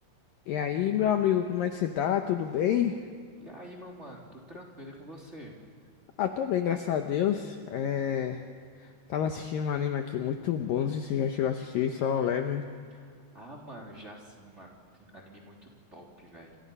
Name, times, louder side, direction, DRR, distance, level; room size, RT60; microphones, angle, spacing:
voice 1, 0.5-3.0 6.2-8.5 8.8-12.6, left 9 dB, 80° left, 5 dB, 2.0 m, -28 dB
voice 2, 3.4-5.5 12.9-16.6, equal, 15° right, -2 dB, 3.0 m, -47 dB
28.5 x 27.5 x 5.5 m, 2.1 s
omnidirectional pair, 5.3 m